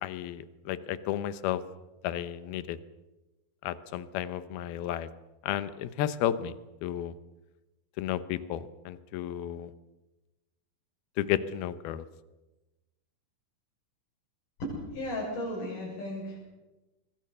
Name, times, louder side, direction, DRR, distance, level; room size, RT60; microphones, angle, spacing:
voice 1, 0.0-1.6 2.0-2.8 3.6-5.1 5.4-6.5 6.8-7.1 8.0-9.7 11.2-12.0, left 11 dB, 80° left, 14 dB, 2.9 m, -32 dB
voice 2, 14.6-16.4, left 1 dB, 55° left, -6 dB, 8.4 m, -35 dB
25.0 x 22.0 x 6.8 m, 1.1 s
omnidirectional pair, 4.4 m